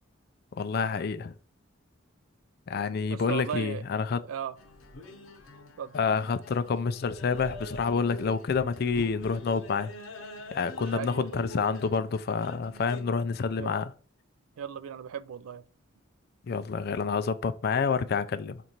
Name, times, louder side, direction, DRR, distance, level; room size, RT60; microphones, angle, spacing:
voice 1, 0.6-1.3 2.7-4.2 5.9-9.9 10.5-13.9 16.5-18.6, left 5 dB, 50° left, 0.3 m, -28 dB
voice 2, 3.1-3.8 4.3-4.5 5.8-5.9 10.8-11.6 13.5-13.7 14.6-15.6, right 8 dB, 90° right, 0.4 m, -36 dB
sound 1, 4.6-13.0, left 1 dB, 75° left, 0.9 m, -45 dB
5.3 x 2.5 x 2.9 m
head